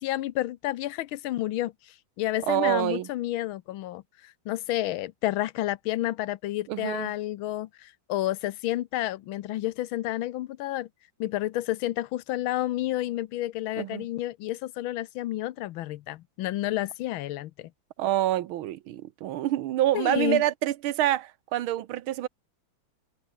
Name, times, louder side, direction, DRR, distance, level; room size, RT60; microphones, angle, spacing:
voice 1, 0.0-1.7 2.2-10.9 11.2-17.7 19.9-20.4, left 15 dB, 85° left, 1.5 m, -30 dB
voice 2, 2.4-3.1 6.7-7.1 13.8-14.1 18.0-22.3, right 13 dB, 90° right, 1.7 m, -27 dB
omnidirectional pair, 2.2 m